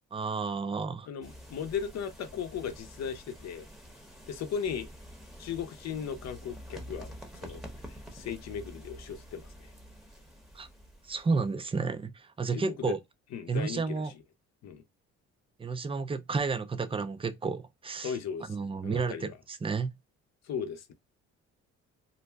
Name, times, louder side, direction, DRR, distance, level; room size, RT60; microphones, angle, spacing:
voice 1, 0.1-1.1 10.5-10.7 11.0-13.0 13.5-14.1 15.6-18.1 18.5-19.9, right 4 dB, 20° right, 0.4 m, -31 dB
voice 2, 1.1-3.7 4.3-4.9 5.4-7.1 7.4-7.6 7.9-9.7 12.5-12.9 13.3-13.9 14.6-14.8 18.0-18.6 18.8-19.4 20.4-20.9, left 7 dB, 60° left, 0.7 m, -37 dB
sound 1, 1.2-11.6, equal, ahead, 0.9 m, -48 dB
2.6 x 2.1 x 3.3 m
cardioid pair, 90°, 30 cm